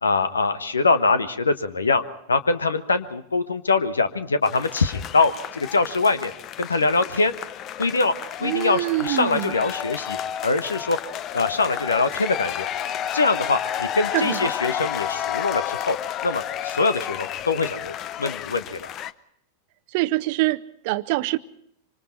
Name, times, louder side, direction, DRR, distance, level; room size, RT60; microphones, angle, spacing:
voice 1, 0.0-2.0 2.3-6.3 6.6-7.3 7.8-8.1 8.4-10.2 10.4-11.0 11.3-12.6 13.1-16.0 16.2-18.9, left 3 dB, 75° left, 1.2 m, -23 dB
sound 1, 4.4-19.1, left 10 dB, 35° left, 0.8 m, -31 dB
voice 2, 8.4-9.5 14.1-14.5 19.9-21.4, right 19 dB, 45° right, 0.8 m, -25 dB
25.5 x 25.5 x 4.4 m
figure-of-eight pair, 90°, 0 cm